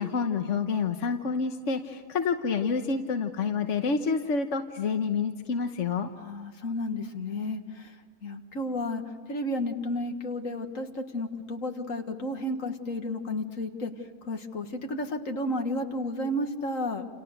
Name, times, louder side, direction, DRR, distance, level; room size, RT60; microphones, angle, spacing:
voice 1, 0.0-6.1, left 5 dB, 70° left, 6 dB, 1.4 m, -28 dB
voice 2, 6.2-13.9 14.2-17.1, left 1 dB, 90° left, 5 dB, 2.2 m, -32 dB
29.0 x 29.0 x 6.6 m, 1.4 s
omnidirectional pair, 1.3 m